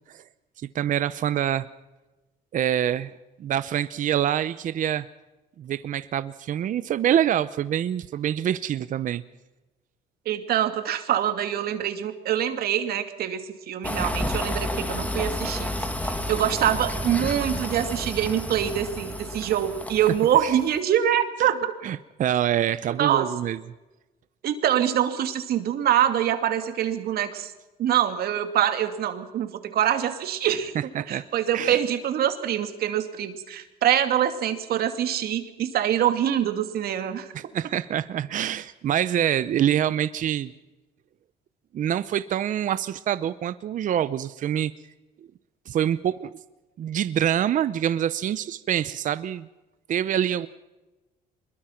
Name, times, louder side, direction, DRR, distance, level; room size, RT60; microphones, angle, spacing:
voice 1, 0.6-1.7 2.5-3.1 3.4-5.1 5.6-9.2 15.4-15.5 15.8-15.9 20.4-20.5 21.8-23.6 30.4-30.5 30.9-31.2 31.5-31.8 37.3-40.5 41.7-44.7 45.7-46.3 46.8-49.5 49.9-50.5, right 10 dB, 50° right, 14 dB, 0.7 m, -25 dB
voice 2, 10.3-15.7 16.0-21.7 22.9-23.3 24.4-27.5 27.8-30.7 31.1-37.3, right 10 dB, 65° right, 7 dB, 2.6 m, -25 dB
sound 1, 13.8-20.8, left 1 dB, 10° left, 2.2 m, -31 dB
24.5 x 22.0 x 5.9 m, 1.1 s
cardioid pair, 110°, 17 cm